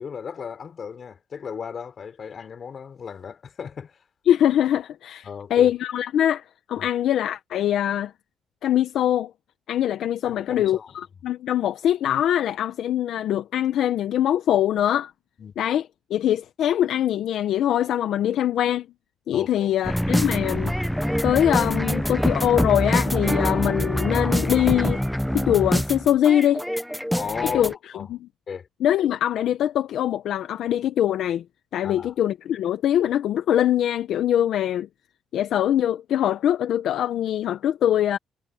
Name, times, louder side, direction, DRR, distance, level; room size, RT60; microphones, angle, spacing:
voice 1, 0.0-4.0 5.2-5.7 6.8-6.9 10.2-10.9 15.4-15.5 19.3-19.7 27.1-27.6 27.9-28.1 28.5-28.7 31.8-32.1, left 6 dB, 50° left, 4.0 m, -35 dB
voice 2, 4.3-8.1 8.6-9.3 9.7-10.8 11.2-15.1 15.6-15.8 16.1-18.9 19.3-20.7 21.2-25.0 25.3-26.6 27.5-27.7 28.1-28.2 28.8-31.4 31.7-34.9 35.3-38.2, left 11 dB, 75° left, 0.9 m, -22 dB
sound 1, 19.8-27.7, equal, ahead, 0.5 m, -24 dB
cardioid pair, 90°, 0 cm